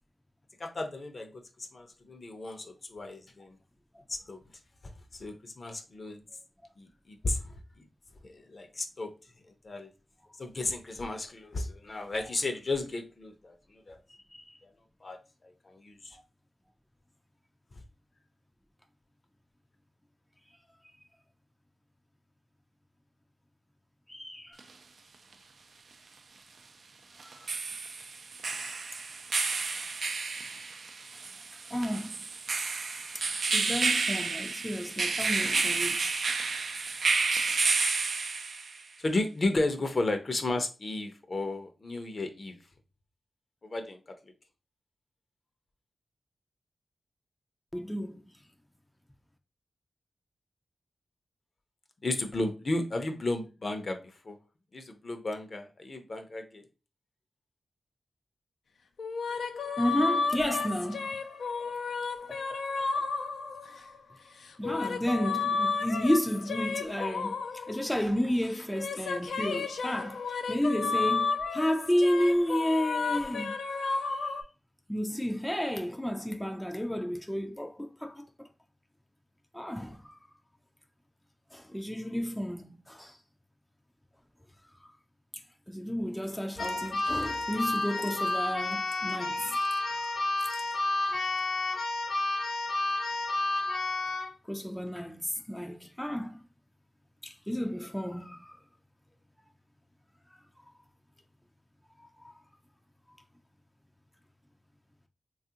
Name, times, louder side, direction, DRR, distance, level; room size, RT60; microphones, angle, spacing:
voice 1, 0.6-3.6 4.1-4.4 4.8-6.2 6.8-7.8 8.2-9.1 9.6-9.9 10.4-14.0 14.6-14.7 15.0-16.2 39.0-42.6 43.6-44.3 52.0-54.4 54.7-56.6, left 2 dB, 50° left, 0.6 m, -34 dB
voice 2, 24.1-24.6 31.7-32.2 33.5-36.1 47.7-48.3 59.8-61.2 62.3-62.4 63.0-63.1 64.6-67.4 67.7-73.5 73.9-74.3 74.9-78.5 79.5-80.2 81.5-83.2 85.7-90.2 94.5-96.4 97.2-98.6 102.2-102.4, equal, 5° left, 0.4 m, -32 dB
sound 1, 24.6-24.7 27.2-38.8, right 4 dB, 70° right, 0.3 m, -30 dB
sound 2, 59.0-64.0 64.4-68.2 68.5-74.4, left 4 dB, 90° left, 0.4 m, -32 dB
Keyboard (musical), 86.6-94.3, left 2 dB, 65° left, 1.0 m, -31 dB
3.3 x 2.4 x 2.7 m
cardioid pair, 60°, 0 cm